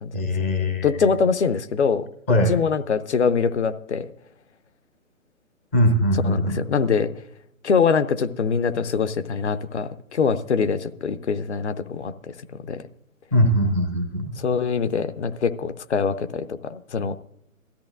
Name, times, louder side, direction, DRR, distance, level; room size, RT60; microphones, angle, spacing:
voice 1, 0.1-0.9 2.3-2.5 5.7-6.6 13.3-14.4, equal, 10° left, 2 dB, 0.5 m, -21 dB
voice 2, 0.8-2.1 2.5-4.1 6.2-7.1 7.6-12.9 14.4-17.1, left 5 dB, 55° left, 11 dB, 0.8 m, -23 dB
17.5 x 13.5 x 2.5 m, 0.75 s
figure-of-eight pair, 130°, 41 cm